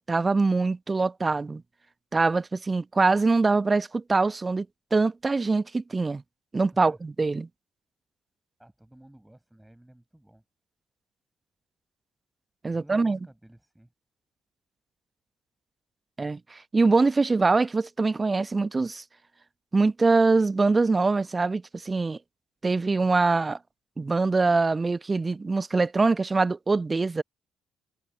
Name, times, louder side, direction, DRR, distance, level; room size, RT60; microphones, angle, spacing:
voice 1, 0.0-1.6 2.1-4.7 4.9-6.2 6.5-7.5 12.6-13.2 16.2-19.0 19.7-22.2 22.6-23.6 24.0-27.2, right 3 dB, 25° right, 1.0 m, -23 dB
voice 2, 8.6-10.4 12.7-13.9, right 1 dB, 5° right, 7.8 m, -53 dB
figure-of-eight pair, 45°, 0 cm